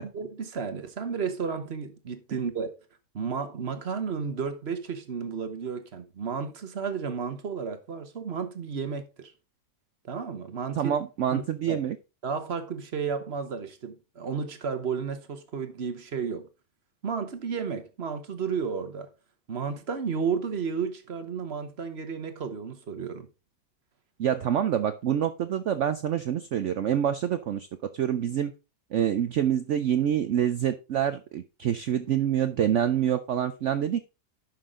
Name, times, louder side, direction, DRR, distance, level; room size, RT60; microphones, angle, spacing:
voice 1, 0.0-2.8 3.1-9.3 10.0-10.9 11.3-11.9 12.2-16.5 17.0-19.1 19.5-23.3, right 6 dB, 40° right, 1.1 m, -32 dB
voice 2, 10.8-12.0 24.2-27.7 27.9-28.5 28.9-34.1, right 9 dB, 80° right, 0.6 m, -26 dB
10.5 x 5.8 x 3.6 m
omnidirectional pair, 1.9 m